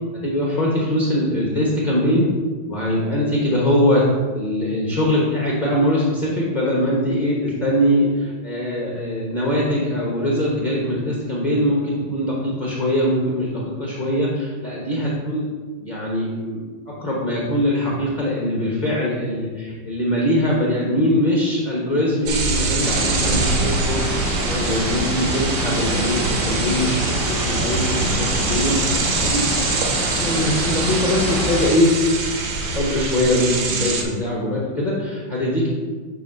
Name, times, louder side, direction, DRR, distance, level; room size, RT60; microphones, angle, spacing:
voice 1, 0.2-2.3 2.7-4.0 4.3-15.5 15.8-27.0 27.3-29.4 30.2-31.9 32.7-35.7, left 1 dB, 35° left, -4 dB, 0.7 m, -22 dB
sound 1, 22.3-34.0, right 3 dB, 85° right, 1.7 m, -24 dB
sound 2, 22.8-31.7, equal, 40° right, 1.9 m, -26 dB
7.5 x 3.0 x 5.3 m, 1.5 s
omnidirectional pair, 2.1 m